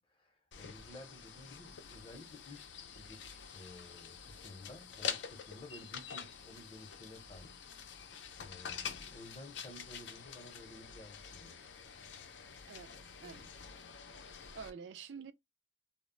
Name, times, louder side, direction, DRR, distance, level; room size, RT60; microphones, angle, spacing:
voice 1, 0.0-7.6 7.9-11.6, left 1 dB, 30° left, 0.7 m, -54 dB
sound 1, 0.5-14.7, left 7 dB, 80° left, 0.5 m, -47 dB
voice 2, 12.7-13.5 14.5-15.3, right 6 dB, 80° right, 0.4 m, -48 dB
2.0 x 2.0 x 3.6 m
head